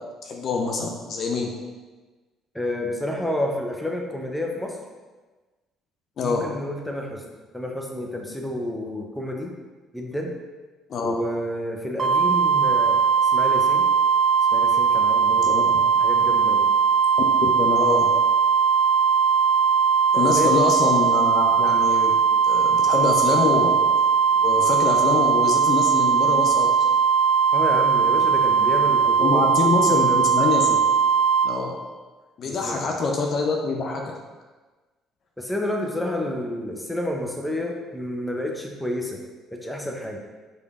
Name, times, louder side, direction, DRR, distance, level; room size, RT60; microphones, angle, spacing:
voice 1, 0.2-1.5 6.2-6.5 10.9-11.1 15.4-15.6 17.4-18.1 20.1-22.2 22.4-23.8 24.4-26.7 29.2-30.8 31.4-31.8 32.4-34.1, left 4 dB, 50° left, 1 dB, 0.5 m, -25 dB
voice 2, 2.5-4.8 6.2-7.2 7.5-9.5 9.9-10.3 11.0-13.9 14.5-16.7 20.1-20.5 27.5-29.5 29.9-30.3 32.4-32.8 35.4-40.2, left 1 dB, 5° left, 1 dB, 0.7 m, -30 dB
sound 1, 12.0-31.5, right 6 dB, 40° right, 0.5 m, -19 dB
5.0 x 3.2 x 2.4 m, 1.3 s
figure-of-eight pair, 50°, 0 cm